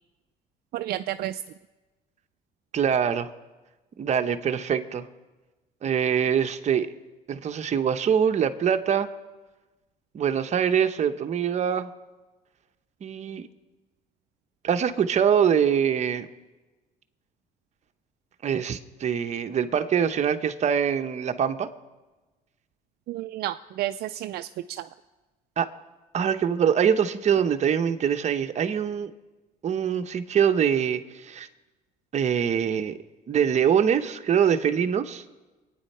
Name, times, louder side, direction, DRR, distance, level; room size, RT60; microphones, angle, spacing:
voice 1, 0.7-1.4 23.1-24.9, right 14 dB, 70° right, 9 dB, 0.4 m, -31 dB
voice 2, 2.7-3.3 4.0-5.1 5.8-6.9 7.3-9.1 10.1-11.9 13.0-13.5 14.6-16.3 18.4-21.7 25.6-25.7 26.1-29.1 29.6-31.5 32.1-33.0 33.3-35.2, right 8 dB, 45° right, 7 dB, 0.9 m, -24 dB
24.5 x 9.3 x 4.3 m, 1.2 s
cardioid pair, 110°, 17 cm